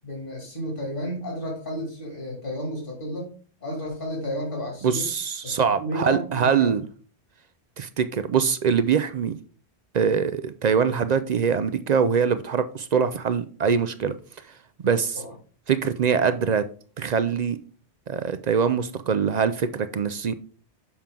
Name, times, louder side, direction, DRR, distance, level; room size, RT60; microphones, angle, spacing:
voice 1, 0.0-3.3 3.6-5.1 5.4-5.5 5.8-6.7 15.1-15.3, equal, 50° left, 2.8 m, -32 dB
voice 2, 4.8-6.8 7.8-9.3 9.9-14.1 14.8-15.2 15.7-16.6 17.0-17.6 18.1-20.3, right 6 dB, 60° right, 0.4 m, -23 dB
7.2 x 5.9 x 3.7 m
omnidirectional pair, 1.1 m